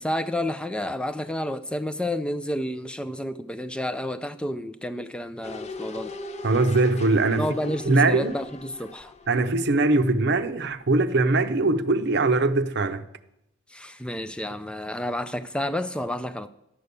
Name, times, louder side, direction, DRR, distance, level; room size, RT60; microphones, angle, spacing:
voice 1, 0.0-6.1 7.4-9.1 13.7-16.5, left 1 dB, 5° left, 0.4 m, -30 dB
sound 1, 5.4-10.4 10.7-10.8, left 3 dB, 35° left, 0.8 m, -40 dB
voice 2, 6.4-7.5 7.8-8.3 9.3-13.0, right 2 dB, 60° right, 0.7 m, -21 dB
11.5 x 6.8 x 8.1 m
head